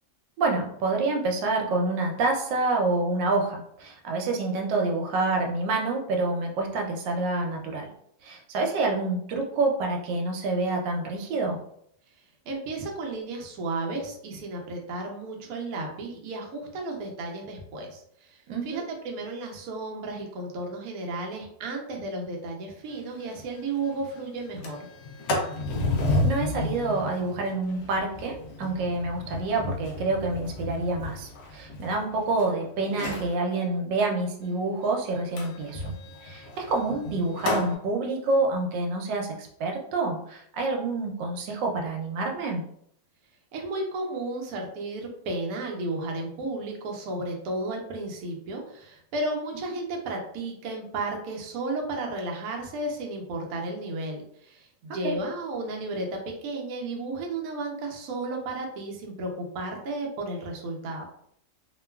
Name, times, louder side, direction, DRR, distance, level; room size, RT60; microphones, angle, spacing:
voice 1, 0.4-7.9 8.2-11.6 18.5-18.8 26.2-35.9 36.2-42.7 55.0-55.1, right 3 dB, 85° right, 2 dB, 1.3 m, -27 dB
voice 2, 12.5-24.8 43.5-61.1, right 2 dB, 70° right, 0 dB, 0.9 m, -33 dB
Sliding door, 22.9-23.0 23.3-23.4 23.8-24.1 24.4-32.4 32.9-33.4 35.4-37.7, left 2 dB, 70° left, 0.9 m, -31 dB
3.0 x 2.2 x 2.2 m, 0.68 s
omnidirectional pair, 1.9 m